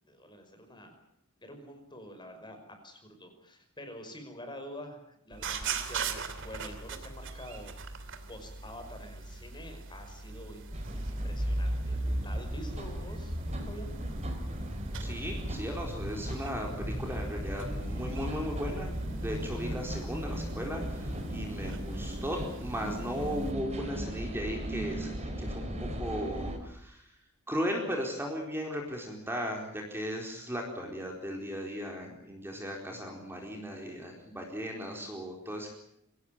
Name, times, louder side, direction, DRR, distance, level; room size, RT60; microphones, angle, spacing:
voice 1, 0.1-1.0 1.4-10.7 10.9-13.4 13.7-13.9, equal, 20° left, 6 dB, 5.5 m, -47 dB
sound 1, 5.3-23.5, right 5 dB, 60° right, 2.8 m, -42 dB
sound 2, 10.7-26.6, equal, 30° right, 4.4 m, -36 dB
voice 2, 15.0-27.1 27.5-35.7, equal, 10° right, 1 dB, 4.3 m, -37 dB
25.0 x 17.5 x 9.2 m, 0.75 s
head